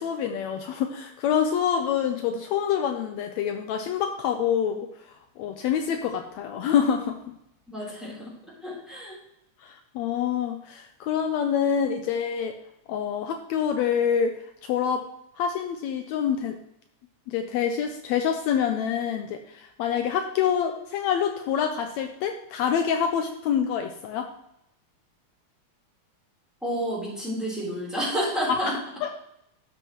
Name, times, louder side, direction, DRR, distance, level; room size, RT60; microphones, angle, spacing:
voice 1, 0.0-4.9 5.4-7.2 9.6-12.6 12.9-14.3 14.6-15.1 15.4-16.6 17.3-24.3 28.5-29.1, left 8 dB, 80° left, 5 dB, 1.8 m, -26 dB
voice 2, 7.7-8.3 8.6-9.2 26.6-28.7, equal, ahead, -6 dB, 3.3 m, -30 dB
12.0 x 6.3 x 3.0 m, 0.80 s
omnidirectional pair, 3.4 m